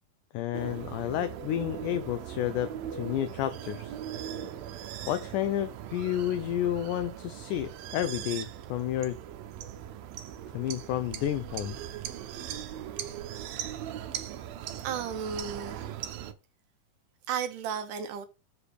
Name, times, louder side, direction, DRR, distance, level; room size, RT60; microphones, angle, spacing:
voice 1, 0.3-4.0 5.1-9.2 10.5-11.8, left 12 dB, 80° left, 1.9 m, -31 dB
sound 1, 0.5-16.3, right 10 dB, 90° right, 2.7 m, -39 dB
voice 2, 14.8-16.1 17.3-18.3, right 7 dB, 70° right, 2.5 m, -34 dB
7.1 x 4.9 x 6.5 m
omnidirectional pair, 4.1 m